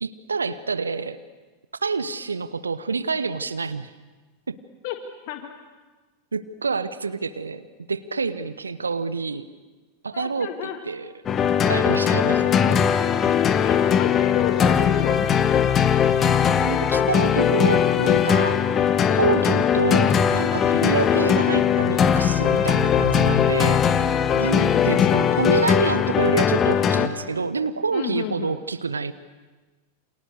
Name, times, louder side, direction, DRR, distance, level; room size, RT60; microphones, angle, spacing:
voice 1, 0.0-1.2 1.8-3.9 4.5-4.6 6.3-7.6 7.9-9.5 10.0-10.5 10.8-11.1 11.7-12.8 16.6-18.6 19.1-23.8 24.3-29.1, right 4 dB, 75° right, 14 dB, 0.9 m, -27 dB
voice 2, 10.1-10.8 13.5-15.6 19.3-19.4 24.4-25.1 27.9-28.6, left 11 dB, 45° left, 6 dB, 1.7 m, -32 dB
sound 1, 11.3-27.1, left 8 dB, 25° left, 1.5 m, -20 dB
29.0 x 26.5 x 6.6 m, 1.3 s
figure-of-eight pair, 90°, 0 cm